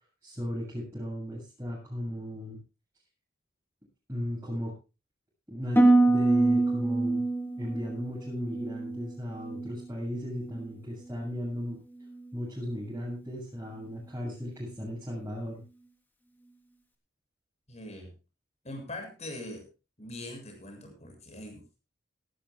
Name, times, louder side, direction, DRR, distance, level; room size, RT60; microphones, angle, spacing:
voice 1, 0.2-2.6 4.1-4.7 5.5-7.2 7.6-11.8 12.3-15.6, equal, 15° right, -7 dB, 7.5 m, -36 dB
Harp, 5.8-9.9 10.2-10.7 11.2-11.5, right 2 dB, 10° left, 3.4 m, -25 dB
voice 2, 17.7-18.1 18.6-19.7 20.0-21.8, left 1 dB, 35° left, 3 dB, 7.4 m, -42 dB
18.0 x 17.5 x 2.4 m, 0.31 s
head